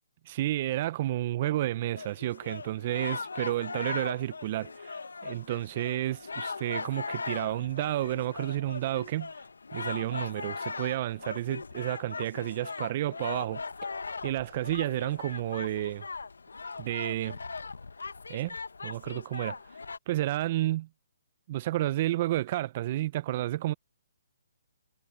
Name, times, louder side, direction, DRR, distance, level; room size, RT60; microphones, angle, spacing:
voice 1, 0.3-5.0 5.2-9.3 9.7-13.6 14.2-16.0 16.8-17.4 18.3-18.6 18.8-19.6 20.1-20.9 21.5-23.7, right 14 dB, 40° right, 0.9 m, -31 dB
sound 1, 2.0-20.0, left 4 dB, 80° left, 1.2 m, -39 dB
figure-of-eight pair, 140°, 0 cm